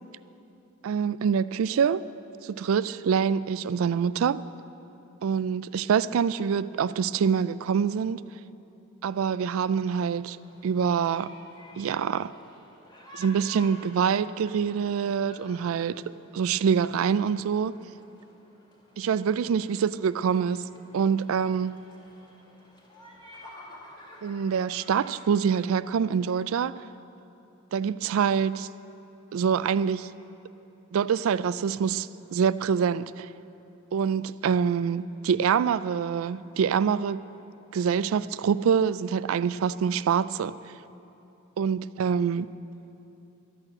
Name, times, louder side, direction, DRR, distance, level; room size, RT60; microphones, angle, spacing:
voice 1, 0.8-2.0 2.4-4.4 5.2-8.2 9.0-10.4 10.6-11.3 11.8-12.3 13.1-17.7 19.0-20.6 20.9-21.8 24.2-26.8 27.7-28.7 29.3-30.1 30.9-33.3 33.9-37.2 37.7-40.6 41.6-42.5, right 7 dB, 70° right, 0.3 m, -25 dB
sound 1, 9.8-25.6, left 1 dB, 25° left, 2.2 m, -51 dB
12.5 x 9.0 x 7.4 m
head